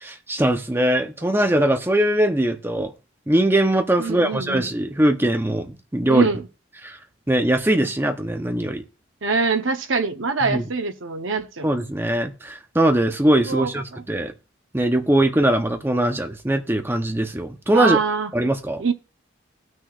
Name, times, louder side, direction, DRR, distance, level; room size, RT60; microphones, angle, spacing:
voice 1, 0.0-2.9 3.3-6.3 6.8-7.0 7.3-8.8 10.4-10.6 11.6-14.3 14.7-18.0 18.3-18.8, right 1 dB, 10° right, 0.7 m, -21 dB
voice 2, 4.0-4.6 6.1-6.4 9.2-11.7 13.5-13.7 17.7-18.3 18.8-18.9, right 4 dB, 70° right, 0.9 m, -24 dB
18.0 x 6.3 x 2.4 m
head